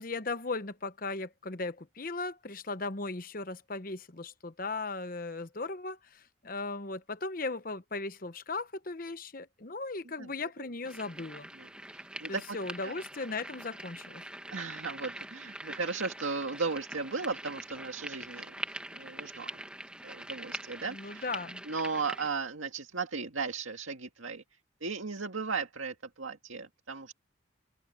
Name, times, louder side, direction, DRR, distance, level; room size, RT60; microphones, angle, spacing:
voice 1, 0.0-11.5 12.3-14.2 20.9-21.6, left 3 dB, 45° left, 1.0 m, -37 dB
sound 1, 10.8-22.3, right 1 dB, 5° right, 1.4 m, -43 dB
voice 2, 11.6-12.6 12.8-13.0 14.5-19.5 20.0-21.3 21.7-24.4 24.8-27.1, right 4 dB, 90° right, 2.1 m, -36 dB
head